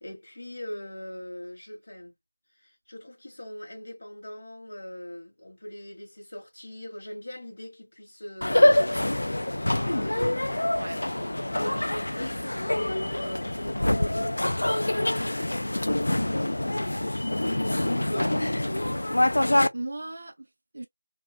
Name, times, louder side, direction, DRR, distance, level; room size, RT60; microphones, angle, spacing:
voice 1, 0.0-2.1 2.6-10.8 11.2-17.2 17.9-18.3, left 1 dB, 35° left, 1.0 m, -41 dB
sound 1, 8.4-19.7, left 1 dB, 65° left, 0.4 m, -25 dB
voice 2, 10.8-11.1 18.1-18.3 19.7-20.9, right 2 dB, 30° right, 0.4 m, -38 dB
2.5 x 2.3 x 2.2 m
figure-of-eight pair, 175°, 0 cm